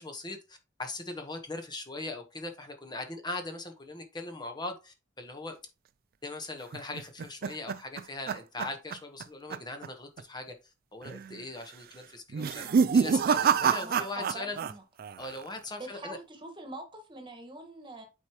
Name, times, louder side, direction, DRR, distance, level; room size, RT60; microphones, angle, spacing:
voice 1, 0.0-5.5 6.2-10.5 10.9-14.6 15.2-16.2, left 2 dB, 25° left, 1.2 m, -40 dB
sound 1, 6.7-9.2 9.5-9.9 10.2-10.3 11.0-11.4 12.3-14.7 15.0-15.6, right 6 dB, 50° right, 0.4 m, -27 dB
voice 2, 12.6-12.9 13.8-14.8 15.8-18.1, right 1 dB, 25° right, 1.6 m, -44 dB
8.2 x 4.7 x 3.0 m
head